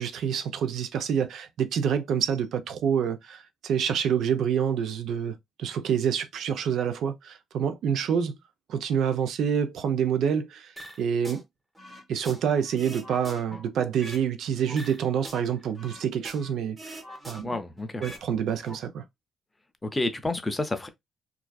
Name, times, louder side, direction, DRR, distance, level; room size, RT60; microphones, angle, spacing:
voice 1, 0.0-8.3 8.7-10.7 11.0-11.4 12.1-17.0 17.3-17.5 18.0-19.0, right 8 dB, 75° right, 0.4 m, -27 dB
sound 1, 10.8-11.4 11.7-14.3 14.6-16.5 16.8-18.2 18.5-18.7, right 1 dB, 15° right, 0.9 m, -43 dB
voice 2, 17.4-18.0 19.8-20.9, left 2 dB, 15° left, 0.5 m, -29 dB
2.4 x 2.3 x 2.2 m
cardioid pair, 90°, 0 cm